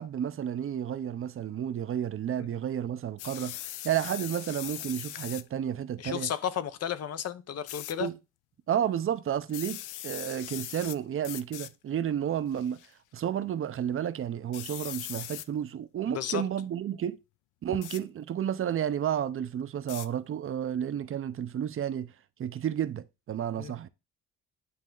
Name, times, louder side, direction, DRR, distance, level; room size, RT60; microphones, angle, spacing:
voice 1, 0.0-6.3 8.0-8.1 8.7-12.8 13.1-17.2 17.6-22.1 22.4-23.9, right 9 dB, 45° right, 0.6 m, -31 dB
sound 1, 3.2-5.5 7.7-7.9 9.5-11.0 11.2-11.7 12.5-12.9 14.5-15.5 17.8-18.0 19.9-20.1, left 14 dB, 85° left, 0.5 m, -40 dB
voice 2, 6.0-8.1 16.1-16.4 23.6-23.7, left 9 dB, 55° left, 0.7 m, -33 dB
9.5 x 3.3 x 3.8 m
cardioid pair, 90°, 30 cm